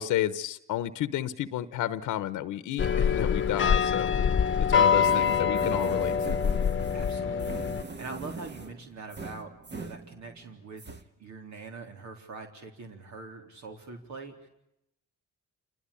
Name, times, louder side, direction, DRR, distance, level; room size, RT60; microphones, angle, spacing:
voice 1, 0.0-4.1 4.7-6.4, left 12 dB, 85° left, 14 dB, 1.1 m, -31 dB
sound 1, 2.8-7.8, left 7 dB, 40° left, 1.1 m, -25 dB
sound 2, 4.9-10.5 10.8-11.0, right 3 dB, 35° right, 1.8 m, -42 dB
voice 2, 6.9-7.7 8.0-10.9 11.2-14.5, right 3 dB, 65° right, 4 dB, 3.7 m, -43 dB
28.0 x 20.0 x 8.6 m, 0.82 s
cardioid pair, 90°, 30 cm